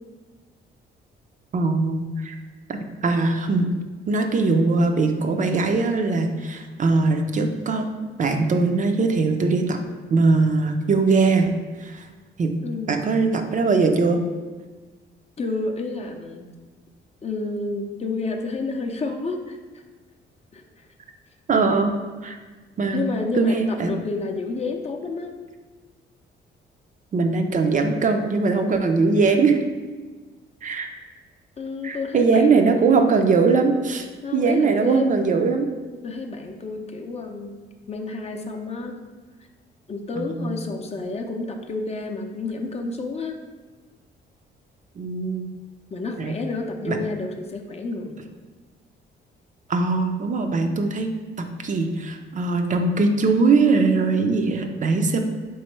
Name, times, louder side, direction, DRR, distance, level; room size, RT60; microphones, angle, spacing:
voice 1, 1.5-2.4 2.7-3.7 4.1-7.9 8.2-9.8 10.1-11.5 11.8-12.1 12.4-12.5 12.9-14.2 21.5-21.9 22.2-22.4 22.8-23.0 23.3-23.9 27.1-29.6 30.6-30.9 31.8-34.1 34.3-35.7 40.2-40.6 45.0-45.5 46.2-46.3 46.9-47.0 49.7-55.2, right 4 dB, 40° right, 5 dB, 0.5 m, -21 dB
voice 2, 12.6-13.1 15.4-16.4 17.2-19.6 20.5-20.6 22.9-25.3 31.6-32.6 34.2-35.1 36.0-37.5 37.9-39.0 39.9-43.4 45.9-48.2, left 3 dB, 30° left, 3 dB, 0.5 m, -30 dB
3.6 x 3.1 x 4.5 m, 1.3 s
cardioid pair, 90°, 20 cm